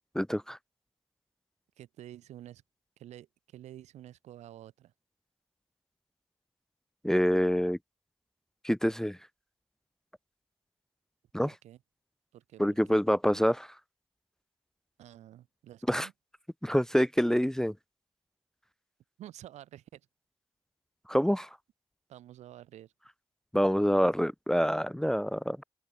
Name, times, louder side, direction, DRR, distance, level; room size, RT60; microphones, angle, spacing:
voice 1, 0.1-0.6 7.0-7.8 8.6-9.2 11.3-11.5 12.6-13.7 15.9-16.1 16.6-17.7 21.1-21.5 23.5-25.6, equal, 5° left, 0.5 m, -26 dB
voice 2, 1.8-2.6 3.0-4.9 11.4-11.8 12.3-13.0 15.0-16.1 19.2-20.1 22.1-22.9, right 12 dB, 85° right, 1.9 m, -49 dB
open air
supercardioid pair, 50°, 11 cm